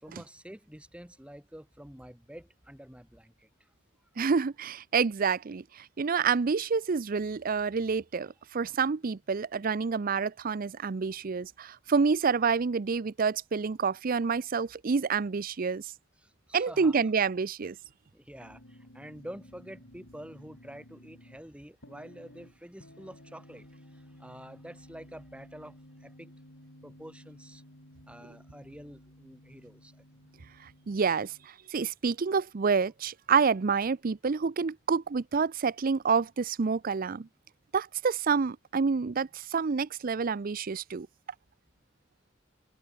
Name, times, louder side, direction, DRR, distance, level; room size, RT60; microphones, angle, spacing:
voice 1, 0.0-3.7 16.2-17.0 18.1-26.3 26.8-27.6 28.0-30.0, equal, 5° right, 1.8 m, -48 dB
voice 2, 4.2-15.8 16.5-17.8 30.9-31.3 31.7-37.3 37.7-41.1, right 5 dB, 45° right, 0.5 m, -28 dB
sound 1, 18.4-31.5, left 1 dB, 90° left, 7.7 m, -54 dB
head